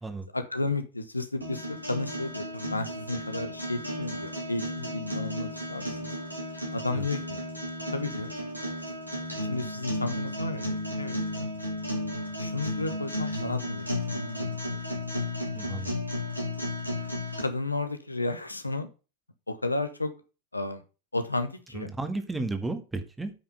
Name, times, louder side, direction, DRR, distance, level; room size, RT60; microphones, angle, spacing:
voice 1, 0.3-6.1 6.7-7.4 7.9-8.3 9.4-11.5 12.4-15.2 16.9-17.1 17.4-18.9 19.5-20.1 20.5-20.8 21.1-21.9, left 2 dB, 85° left, 8 dB, 1.3 m, -33 dB
sound 1, 1.4-17.4, left 1 dB, 85° right, 3.5 m, -34 dB
voice 2, 15.6-15.9 21.7-23.3, right 2 dB, 10° right, 8 dB, 1.8 m, -33 dB
9.1 x 6.1 x 5.5 m, 0.32 s
figure-of-eight pair, 90°, 0 cm